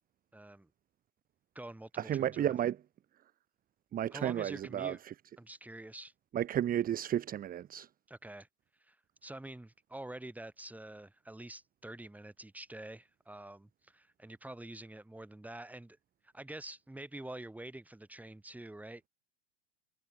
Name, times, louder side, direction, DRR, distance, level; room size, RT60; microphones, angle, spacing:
voice 1, 0.3-0.7 1.5-2.5 4.1-5.0 5.4-6.1 8.1-8.5 8.8-9.0 9.2-16.0 16.3-19.0, right 1 dB, 5° right, 6.4 m, -47 dB
voice 2, 2.0-2.8 3.9-5.1 6.3-7.9, right 11 dB, 25° right, 1.3 m, -33 dB
hypercardioid pair, 110°, 36 cm